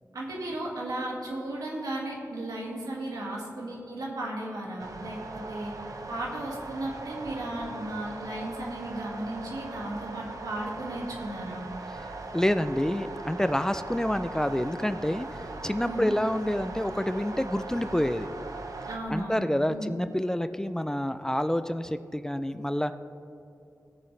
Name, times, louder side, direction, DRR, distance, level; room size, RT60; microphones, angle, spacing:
voice 1, 0.1-5.7 6.1-11.6 15.8-16.1 18.9-20.0, right 1 dB, 90° right, -3 dB, 2.1 m, -35 dB
sound 1, 4.8-19.0, right 2 dB, 70° right, 0.8 m, -40 dB
voice 2, 12.3-15.3 15.6-18.3 19.1-23.0, left 1 dB, 10° left, 11 dB, 0.4 m, -28 dB
17.5 x 7.2 x 3.3 m, 2.7 s
wide cardioid pair, 70°, 6 cm